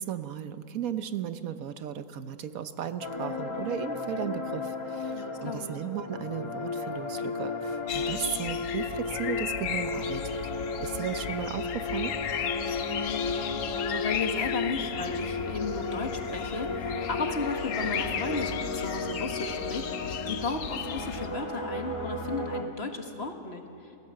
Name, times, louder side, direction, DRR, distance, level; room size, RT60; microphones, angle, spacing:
voice 1, 0.0-10.4 10.8-12.2, right 9 dB, 70° right, 11 dB, 1.2 m, -35 dB
sound 1, 3.0-22.6, left 3 dB, 20° left, 1.5 m, -34 dB
voice 2, 5.1-5.8 12.9-24.0, left 4 dB, 45° left, 4 dB, 1.8 m, -35 dB
sound 2, 7.9-21.3, left 8 dB, 65° left, 1.1 m, -36 dB
29.0 x 16.5 x 7.6 m, 2.8 s
omnidirectional pair, 1.6 m